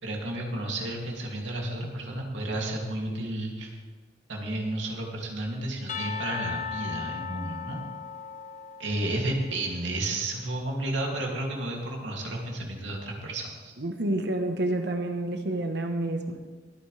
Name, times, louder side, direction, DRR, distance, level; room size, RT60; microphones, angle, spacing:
voice 1, 0.0-3.7 4.3-7.9 8.8-13.7, right 1 dB, 80° right, -1 dB, 2.6 m, -32 dB
Percussion / Church bell, 5.9-9.5, left 7 dB, 45° left, 0.8 m, -37 dB
voice 2, 13.8-16.5, right 1 dB, 65° right, 5 dB, 1.2 m, -29 dB
22.0 x 9.4 x 3.4 m, 1.4 s
head